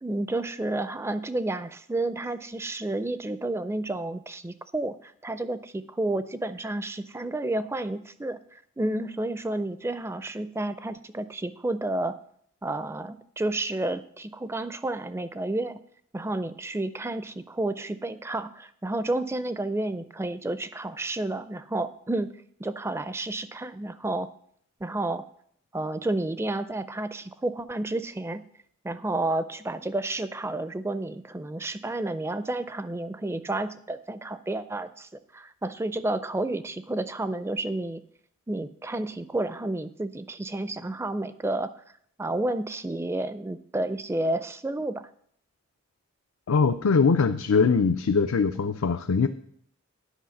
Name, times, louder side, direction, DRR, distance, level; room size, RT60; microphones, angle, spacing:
voice 1, 0.0-12.2 12.6-15.8 16.1-22.3 22.6-24.3 24.8-25.2 25.7-28.4 28.8-38.0 38.5-41.7 42.2-45.0, right 2 dB, 10° right, 13 dB, 0.4 m, -31 dB
voice 2, 46.5-49.3, left 5 dB, 80° left, 8 dB, 0.5 m, -22 dB
10.0 x 5.6 x 7.0 m, 0.65 s
head